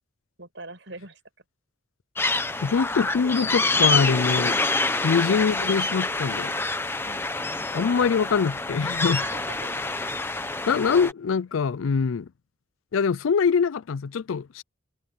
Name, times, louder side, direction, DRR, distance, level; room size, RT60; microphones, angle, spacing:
voice 1, 0.4-1.2 5.1-5.3 7.0-7.3 9.1-9.9 10.4-10.6, right 3 dB, 70° right, 5.7 m, -42 dB
sound 1, 2.2-11.1, left 3 dB, 10° left, 0.9 m, -26 dB
voice 2, 2.6-4.6 5.0-6.5 7.7-9.2 10.7-12.3 12.9-14.6, left 5 dB, 90° left, 0.4 m, -23 dB
open air
head